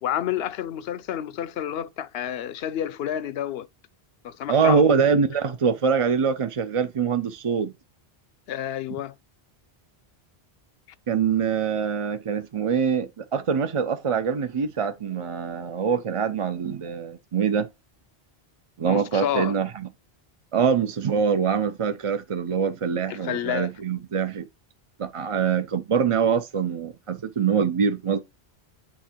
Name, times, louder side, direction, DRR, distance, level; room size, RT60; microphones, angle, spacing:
voice 1, 0.0-3.7 4.2-5.1 8.5-9.1 18.8-19.6 23.1-23.7, left 10 dB, 75° left, 0.8 m, -29 dB
voice 2, 4.5-7.7 11.1-17.7 18.8-19.9 20.5-24.5 25.0-28.2, right 6 dB, 45° right, 0.5 m, -24 dB
8.9 x 3.4 x 4.4 m
omnidirectional pair, 1.1 m